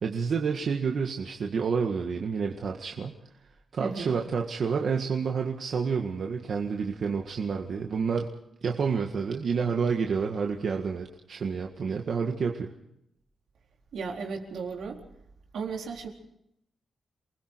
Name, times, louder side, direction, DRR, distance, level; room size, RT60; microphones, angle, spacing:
voice 1, 0.0-3.2 3.7-8.3 8.6-12.7, right 5 dB, 55° right, 2 dB, 1.8 m, -29 dB
voice 2, 3.8-4.1 13.9-15.0 15.5-16.1, right 5 dB, 85° right, 1 dB, 4.3 m, -35 dB
29.0 x 20.5 x 4.7 m, 0.78 s
wide cardioid pair, 135°, 0 cm